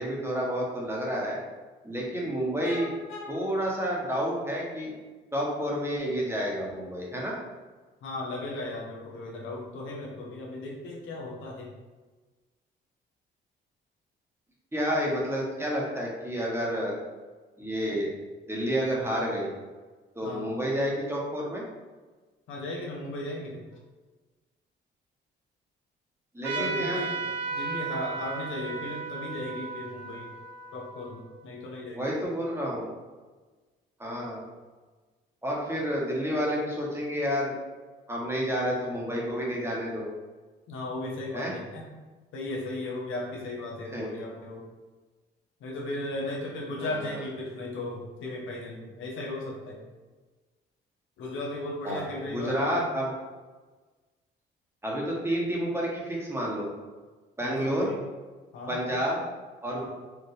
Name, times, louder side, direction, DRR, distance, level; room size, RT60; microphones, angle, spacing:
voice 1, 0.0-1.4 1.8-2.9 3.3-4.9 5.3-7.4 14.7-16.9 17.6-18.1 18.5-19.5 20.1-21.6 26.3-27.1 31.9-32.9 34.0-34.4 35.4-37.6 38.1-40.1 41.3-41.5 43.9-44.1 46.8-47.2 51.8-52.0 52.3-53.1 54.8-56.7 57.4-57.9 58.7-59.2 59.6-59.9, equal, 10° right, -3 dB, 1.3 m, -30 dB
voice 2, 2.6-3.4 8.0-11.7 20.2-20.4 22.5-23.6 26.5-30.3 30.7-32.0 40.7-41.9 42.3-44.7 45.6-49.8 51.2-52.9 57.4-58.0 58.5-58.8 59.7-59.9, left 2 dB, 85° left, -2 dB, 1.0 m, -36 dB
Trumpet, 26.4-31.5, right 4 dB, 65° right, 0.7 m, -35 dB
4.7 x 2.8 x 3.3 m, 1.3 s
cardioid pair, 90°, 20 cm